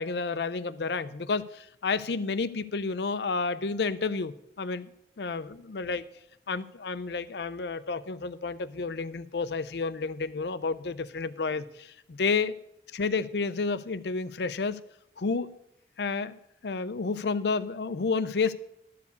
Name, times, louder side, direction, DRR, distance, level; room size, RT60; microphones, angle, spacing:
voice 1, 0.0-4.9 5.2-6.1 6.5-12.5 12.9-14.8 15.2-15.5 16.0-18.5, left 4 dB, 70° left, 13 dB, 0.6 m, -30 dB
12.5 x 4.8 x 8.3 m, 0.75 s
head